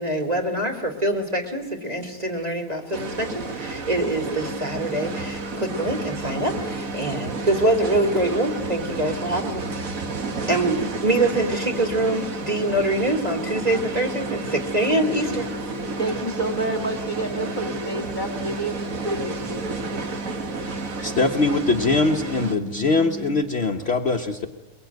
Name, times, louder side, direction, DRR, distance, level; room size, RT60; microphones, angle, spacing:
voice 1, 0.0-3.3 3.6-9.6 10.5-15.7, right 1 dB, 25° right, 4 dB, 2.7 m, -24 dB
sound 1, 2.9-22.5, right 3 dB, 65° right, 2.0 m, -32 dB
sound 2, 4.4-23.4, left 1 dB, 10° left, 1.3 m, -38 dB
sound 3, 5.2-5.3 5.7-6.7 7.1-8.2 8.5-10.5, right 6 dB, 85° right, 2.8 m, -41 dB
voice 2, 16.0-19.7, right 2 dB, 30° left, 6 dB, 1.9 m, -29 dB
voice 3, 21.0-24.5, left 3 dB, 50° left, 4 dB, 1.2 m, -22 dB
23.0 x 22.5 x 9.3 m, 1.1 s
omnidirectional pair, 1.6 m